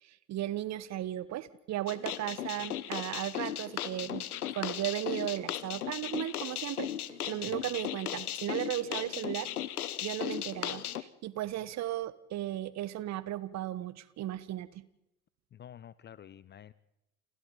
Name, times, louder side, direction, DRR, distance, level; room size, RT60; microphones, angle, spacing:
voice 1, 0.0-6.9 7.3-9.5 10.0-14.8, right 13 dB, 35° right, 17 dB, 1.3 m, -36 dB
sound 1, 1.9-11.0, left 11 dB, 75° left, 1.1 m, -37 dB
voice 2, 15.5-16.7, left 10 dB, 25° left, 19 dB, 0.8 m, -50 dB
29.5 x 29.0 x 4.1 m, 0.87 s
figure-of-eight pair, 75°, 44 cm